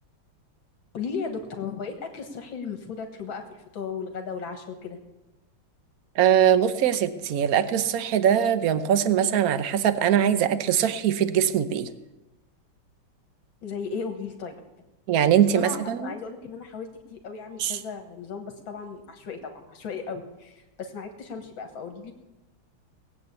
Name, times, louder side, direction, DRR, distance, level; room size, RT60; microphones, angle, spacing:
voice 1, 0.9-5.0 13.6-14.6 15.5-22.1, left 5 dB, 75° left, 4 dB, 2.2 m, -36 dB
voice 2, 6.2-11.9 15.1-16.1 17.6-17.8, right 9 dB, 55° right, 12 dB, 1.2 m, -22 dB
19.5 x 8.0 x 8.3 m, 1.0 s
omnidirectional pair, 2.1 m